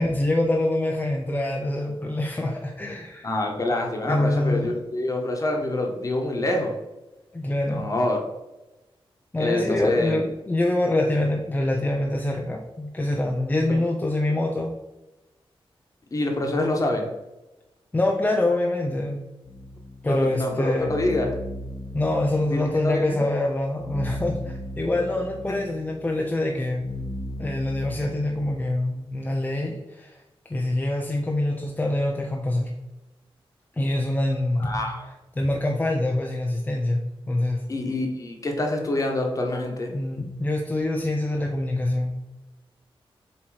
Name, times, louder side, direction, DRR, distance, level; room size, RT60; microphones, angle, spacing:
voice 1, 0.0-3.3 4.1-4.7 7.3-7.9 9.3-14.7 17.9-19.2 20.0-21.0 21.9-26.9 27.4-30.2 30.5-32.7 33.8-34.9 35.4-37.7 39.9-42.2, left 1 dB, 15° left, 1 dB, 0.5 m, -25 dB
voice 2, 3.2-6.7 7.6-8.2 9.4-10.2 13.7-13.8 16.1-17.1 20.0-21.3 22.4-23.3 25.5-25.6 34.6-35.1 37.7-39.9, left 1 dB, 35° left, 2 dB, 1.2 m, -26 dB
sound 1, 19.4-28.6, left 1 dB, 60° left, 1.4 m, -37 dB
7.2 x 3.0 x 4.8 m, 1.0 s
wide cardioid pair, 155°, 10 cm